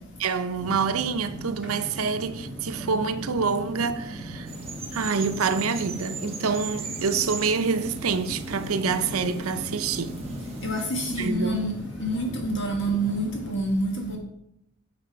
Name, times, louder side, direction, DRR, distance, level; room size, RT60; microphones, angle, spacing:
voice 1, 0.2-4.5 4.9-10.2 11.2-11.6, right 5 dB, 85° right, 0.6 m, -27 dB
sound 1, 0.6-13.5, right 1 dB, 5° right, 1.8 m, -38 dB
sound 2, 4.5-11.3, right 5 dB, 30° right, 1.1 m, -40 dB
voice 2, 10.6-11.7 12.0-14.2, right 1 dB, 60° left, 1.4 m, -27 dB
9.0 x 5.9 x 4.7 m
head